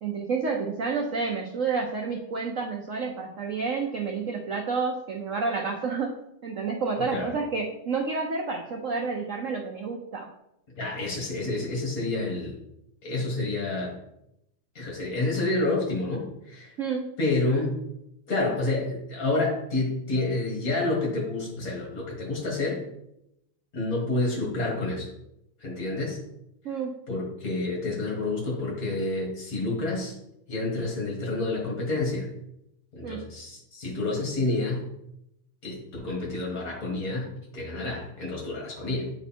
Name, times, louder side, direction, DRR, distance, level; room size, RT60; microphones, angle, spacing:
voice 1, 0.0-6.2 6.4-10.3 16.8-17.1 26.6-27.0 33.0-33.2, right 4 dB, 90° right, 1 dB, 0.6 m, -29 dB
voice 2, 10.8-12.5 13.0-14.0 14.8-16.7 17.2-17.8 18.3-22.8 23.7-25.1 25.6-26.2 27.1-30.1 30.5-32.3 32.9-34.9 35.6-39.1, left 2 dB, 40° left, -2 dB, 2.2 m, -29 dB
8.0 x 4.0 x 4.3 m, 0.81 s
omnidirectional pair, 2.4 m